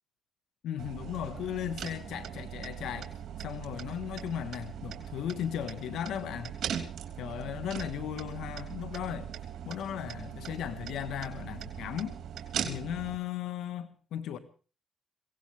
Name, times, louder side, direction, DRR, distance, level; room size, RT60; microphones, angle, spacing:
voice 1, 0.6-3.1 3.4-6.6 7.2-12.2 12.6-14.4, left 10 dB, 80° left, 1.4 m, -36 dB
sound 1, 0.8-13.2, right 9 dB, 65° right, 3.1 m, -40 dB
22.5 x 18.0 x 3.5 m
cardioid pair, 90°, 0 cm